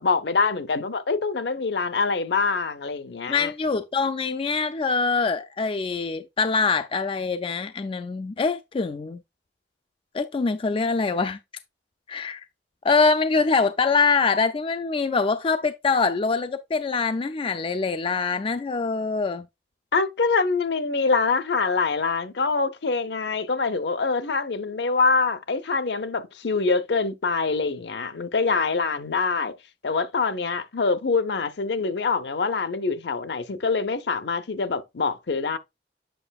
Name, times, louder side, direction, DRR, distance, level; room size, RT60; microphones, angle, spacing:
voice 1, 0.0-3.5 19.9-29.5 29.8-35.6, left 4 dB, 70° left, 0.7 m, -25 dB
voice 2, 3.3-9.2 10.1-11.4 12.1-12.4 12.8-19.5, left 4 dB, 30° left, 0.4 m, -24 dB
7.8 x 5.4 x 2.3 m
head